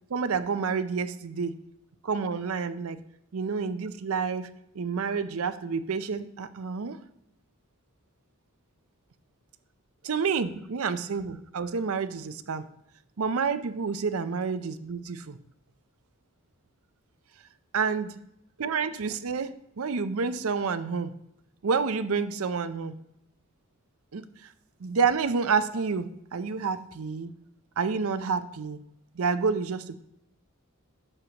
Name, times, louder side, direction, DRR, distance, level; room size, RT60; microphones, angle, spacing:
voice 1, 0.1-1.6 2.0-3.0 3.3-4.5 4.7-7.0 10.0-12.7 13.2-15.4 17.7-18.1 18.6-21.1 21.6-23.0 24.1-24.3 24.8-27.3 27.8-28.8 29.2-30.0, right 5 dB, 65° right, 12 dB, 0.5 m, -29 dB
11.0 x 7.0 x 2.9 m, 0.81 s
head